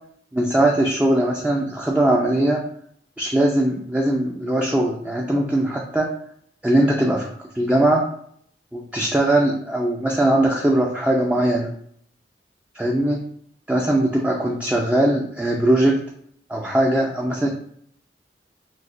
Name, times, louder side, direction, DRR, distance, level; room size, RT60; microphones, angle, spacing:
voice 1, 0.3-2.6 3.2-6.1 6.6-7.3 7.5-8.0 8.7-11.7 12.7-13.2 13.7-16.0 16.5-17.5, right 1 dB, 5° right, -1 dB, 0.4 m, -20 dB
5.9 x 2.1 x 2.4 m, 0.63 s
head